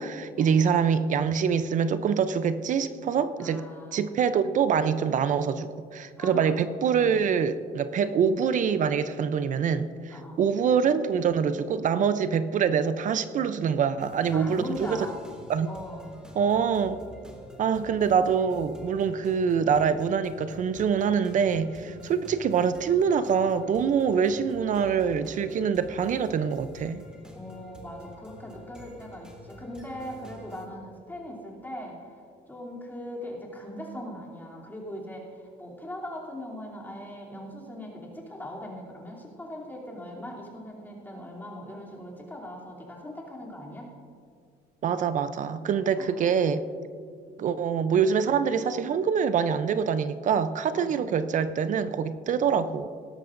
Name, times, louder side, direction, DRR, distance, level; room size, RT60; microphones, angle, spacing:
voice 1, 0.0-3.6 3.9-15.1 15.5-15.7 16.3-17.0 17.6-27.0 44.8-46.6 47.4-52.9, right 7 dB, 50° right, 12 dB, 0.5 m, -25 dB
voice 2, 3.4-4.0 6.2-6.6 10.1-10.4 14.3-15.2 15.7-16.1 21.8-22.1 27.3-43.9 45.9-46.2 50.7-51.1, left 1 dB, 10° left, -3 dB, 2.9 m, -40 dB
sound 1, 14.0-30.7, equal, 5° right, 1.9 m, -47 dB
17.5 x 13.0 x 2.6 m, 2.2 s
cardioid pair, 110°, 17 cm